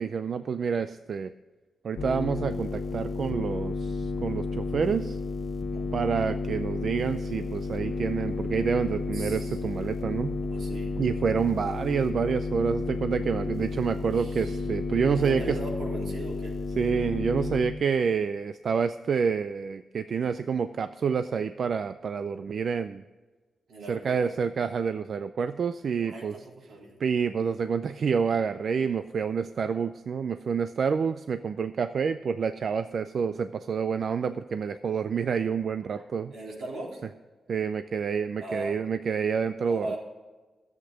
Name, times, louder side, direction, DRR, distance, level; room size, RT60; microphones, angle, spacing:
voice 1, 0.0-1.3 1.8-5.2 5.9-10.4 11.0-15.6 16.8-23.0 23.9-26.4 27.0-36.3 37.5-39.9, right 6 dB, 55° right, 11 dB, 0.4 m, -28 dB
sound 1, 1.9-17.6, left 3 dB, 55° left, 1.7 m, -32 dB
voice 2, 9.1-9.9 10.5-11.0 14.1-14.6 15.2-16.5 23.7-24.2 26.0-27.0 36.3-37.0 38.4-38.8 39.7-40.0, right 2 dB, 85° right, -3 dB, 3.8 m, -39 dB
13.5 x 8.1 x 5.1 m, 1.3 s
wide cardioid pair, 165°, 0 cm